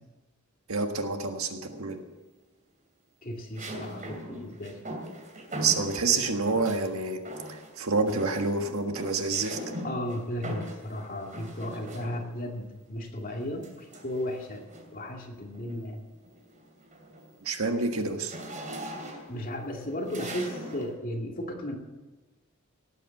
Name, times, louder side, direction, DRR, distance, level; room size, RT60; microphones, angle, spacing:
voice 1, 0.7-2.0 5.6-7.2 7.5-9.6 17.4-18.4, right 4 dB, 75° right, 5 dB, 1.6 m, -28 dB
sound 1, 1.7-2.2 3.6-6.9 7.3-7.8 8.1-12.5 13.6-15.0 15.5-15.8 16.2-20.9, right 1 dB, 40° right, 2.9 m, -41 dB
voice 2, 3.2-4.8 9.8-14.7 14.9-16.0 19.3-21.7, left 1 dB, 40° left, 1 dB, 2.3 m, -35 dB
18.0 x 8.4 x 7.2 m, 1.2 s
head